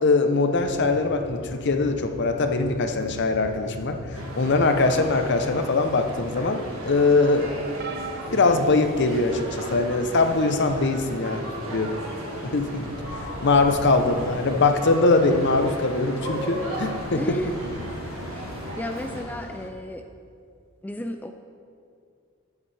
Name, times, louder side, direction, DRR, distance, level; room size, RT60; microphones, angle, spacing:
voice 1, 0.0-4.0 4.3-7.5 8.3-11.4 11.7-11.9 12.4-13.0 13.4-17.4, left 3 dB, 55° left, 7 dB, 0.7 m, -22 dB
sound 1, 0.5-19.7, left 2 dB, 80° left, 0.9 m, -41 dB
sound 2, 4.1-19.2, right 1 dB, 70° right, 2.0 m, -36 dB
sound 3, 7.8-9.6 10.3-10.6 11.9-12.0, right 4 dB, 50° right, 0.5 m, -40 dB
voice 2, 17.1-17.5 18.3-18.4 18.8-20.0 20.8-21.3, left 1 dB, 10° left, 5 dB, 0.3 m, -32 dB
12.5 x 8.4 x 3.3 m, 2.4 s
head